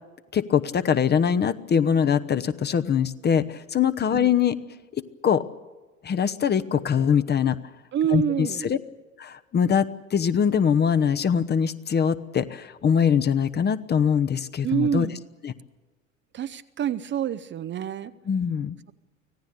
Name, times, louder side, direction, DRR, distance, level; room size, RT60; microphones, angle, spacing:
voice 1, 0.3-4.6 4.9-5.4 6.0-7.6 8.1-8.8 9.2-15.1 15.4-15.5 18.3-18.8, left 7 dB, 25° left, 12 dB, 1.0 m, -23 dB
voice 2, 7.9-8.8 14.6-15.2 16.3-18.1, right 9 dB, 30° right, 13 dB, 0.7 m, -27 dB
25.0 x 17.0 x 8.3 m, 1.3 s
figure-of-eight pair, 70°, 40 cm